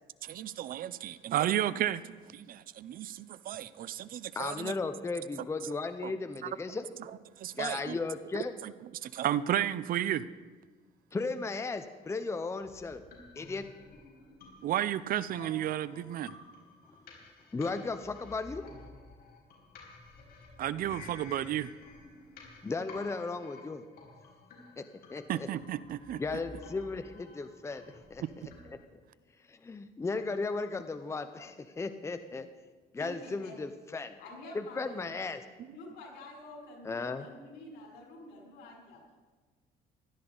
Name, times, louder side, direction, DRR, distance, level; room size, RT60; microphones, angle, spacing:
voice 1, 0.2-4.8 6.0-6.1 6.4-6.5 7.4-8.0 8.3-10.2 14.6-16.4 20.6-21.7 25.3-26.2 28.2-28.3, right 12 dB, 60° right, 17 dB, 0.5 m, -33 dB
voice 2, 4.3-6.9 7.6-8.5 11.1-13.0 13.4-13.7 17.5-18.7 22.6-23.9 24.8-25.5 26.2-27.8 28.1-28.2 28.7-28.8 29.5-32.5 32.9-34.1 34.5-35.4 36.8-37.2, left 3 dB, 15° left, 9 dB, 0.6 m, -35 dB
sound 1, 12.6-28.8, left 3 dB, 65° left, 4.9 m, -52 dB
voice 3, 33.0-33.6 34.2-35.1 35.6-39.0, left 2 dB, 85° left, -2 dB, 5.5 m, -48 dB
16.5 x 13.0 x 4.0 m, 1.4 s
cardioid pair, 110°, 17 cm